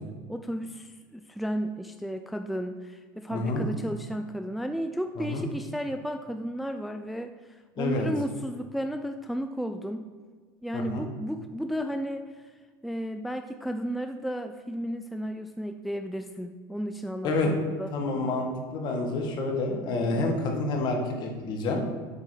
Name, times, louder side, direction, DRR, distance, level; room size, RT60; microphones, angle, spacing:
voice 1, 0.3-10.1 10.6-12.2 12.8-17.9 20.0-20.3, equal, ahead, 6 dB, 0.3 m, -33 dB
voice 2, 3.3-3.6 5.2-5.4 7.8-8.1 10.7-11.0 17.2-17.5 17.9-21.8, left 2 dB, 45° left, 2 dB, 1.7 m, -28 dB
8.3 x 3.8 x 6.3 m, 1.5 s
supercardioid pair, 125°, 10 cm